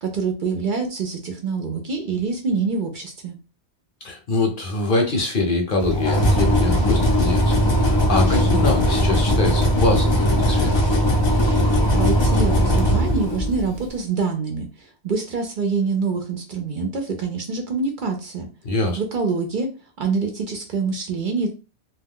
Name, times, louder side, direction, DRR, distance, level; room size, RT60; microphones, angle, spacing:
voice 1, 0.0-3.4 11.9-18.5 19.0-19.7 20.0-21.5, right 4 dB, 60° right, 3 dB, 0.6 m, -25 dB
voice 2, 4.0-10.8 18.6-19.0, left 2 dB, 55° left, 2 dB, 0.8 m, -24 dB
sound 1, 5.8-13.8, equal, 40° left, 0.4 m, -19 dB
2.2 x 2.2 x 3.5 m, 0.32 s
omnidirectional pair, 1.1 m